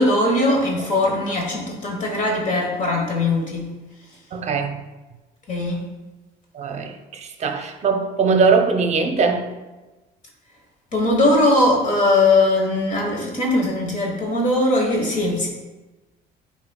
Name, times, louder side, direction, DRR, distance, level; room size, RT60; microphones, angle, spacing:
voice 1, 0.0-3.7 5.5-5.8 10.9-15.5, left 2 dB, 45° left, 0 dB, 1.3 m, -20 dB
voice 2, 4.3-4.8 6.5-9.5, right 5 dB, 40° right, 6 dB, 0.7 m, -21 dB
9.5 x 4.2 x 2.3 m, 1.2 s
cardioid pair, 110°, 17 cm